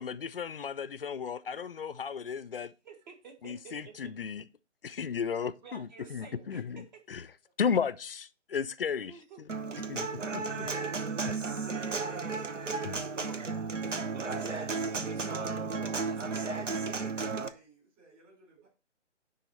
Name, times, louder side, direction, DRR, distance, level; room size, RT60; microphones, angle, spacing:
voice 1, 0.0-2.7 3.4-4.4 4.8-7.2 7.6-9.1 9.9-10.7 12.8-13.0, left 6 dB, 50° left, 0.5 m, -34 dB
voice 2, 2.8-4.1 5.6-6.6 7.1-7.2 9.1-9.4 9.7-9.8 12.3-12.4 13.0-13.4 14.1-14.7 15.1-17.1, right 4 dB, 40° right, 1.6 m, -50 dB
Human voice / Acoustic guitar, 9.5-17.5, right 4 dB, 85° right, 0.9 m, -34 dB
voice 3, 15.9-18.7, right 3 dB, 20° right, 4.3 m, -57 dB
10.5 x 3.9 x 4.1 m
figure-of-eight pair, 140°, 36 cm